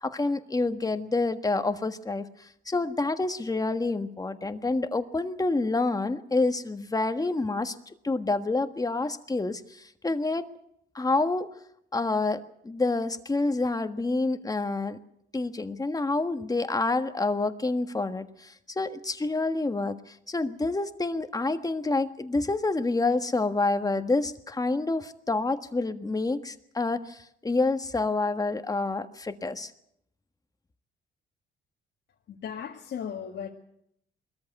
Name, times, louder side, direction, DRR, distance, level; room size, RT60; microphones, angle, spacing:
voice 1, 0.0-10.5 10.9-11.5 11.9-15.0 15.3-29.7, left 3 dB, 20° left, 8 dB, 1.5 m, -28 dB
voice 2, 32.3-33.5, left 8 dB, 65° left, 0 dB, 2.0 m, -36 dB
21.0 x 14.0 x 9.3 m, 0.75 s
cardioid pair, 90°, 20 cm